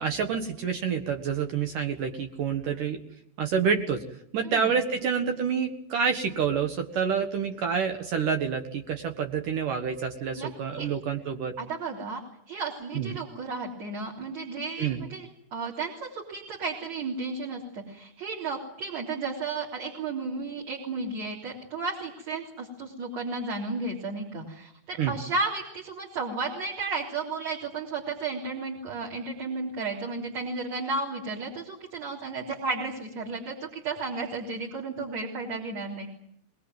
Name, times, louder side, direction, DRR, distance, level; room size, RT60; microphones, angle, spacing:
voice 1, 0.0-3.0 3.4-4.0 4.3-11.6 12.9-13.2 14.8-15.0 25.0-25.1, right 6 dB, 60° right, 6 dB, 2.4 m, -28 dB
voice 2, 10.4-10.9 11.6-12.2 12.5-36.1, right 3 dB, 35° right, -3 dB, 4.1 m, -33 dB
23.0 x 22.0 x 9.4 m, 0.73 s
omnidirectional pair, 5.6 m